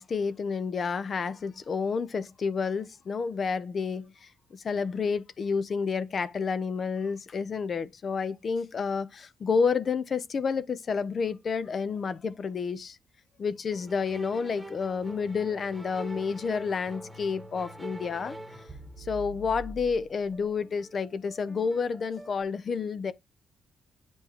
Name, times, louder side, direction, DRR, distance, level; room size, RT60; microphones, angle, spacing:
voice 1, 0.0-13.0 13.4-18.4 19.0-23.1, left 5 dB, 45° left, 0.6 m, -30 dB
sound 1, 13.7-22.4, right 1 dB, 5° right, 1.3 m, -44 dB
9.0 x 4.5 x 2.8 m
cardioid pair, 105°, 0 cm